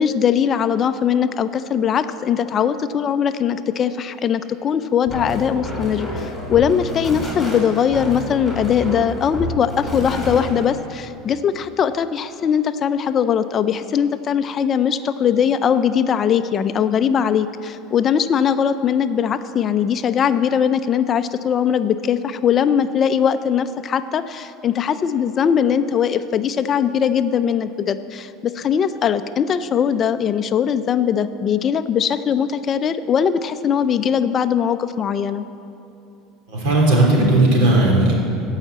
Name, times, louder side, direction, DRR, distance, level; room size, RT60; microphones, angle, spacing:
voice 1, 0.0-35.4, left 8 dB, 35° left, 11 dB, 0.4 m, -20 dB
sound 1, 5.1-10.7, left 1 dB, 5° left, 3.4 m, -29 dB
voice 2, 36.5-38.1, right 2 dB, 70° right, -2 dB, 3.4 m, -15 dB
15.0 x 5.7 x 8.0 m, 2.7 s
supercardioid pair, 130°, 0 cm